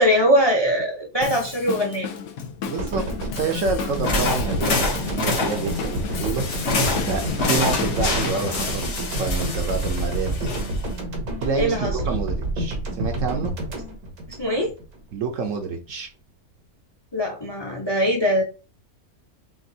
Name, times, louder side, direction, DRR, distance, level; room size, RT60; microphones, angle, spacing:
voice 1, 0.0-2.1 11.6-11.9 14.4-14.7 17.1-18.4, equal, 20° left, 0.8 m, -21 dB
Drum kit, 1.2-8.7, left 7 dB, 75° left, 1.1 m, -33 dB
voice 2, 2.7-10.6 11.4-13.5 15.1-16.1, right 4 dB, 65° right, 1.0 m, -28 dB
sound 1, 2.8-15.0 15.2-15.4, right 1 dB, 80° right, 1.6 m, -28 dB
sound 2, 3.9-11.0, left 3 dB, 55° left, 1.3 m, -27 dB
5.9 x 2.5 x 2.7 m
omnidirectional pair, 1.6 m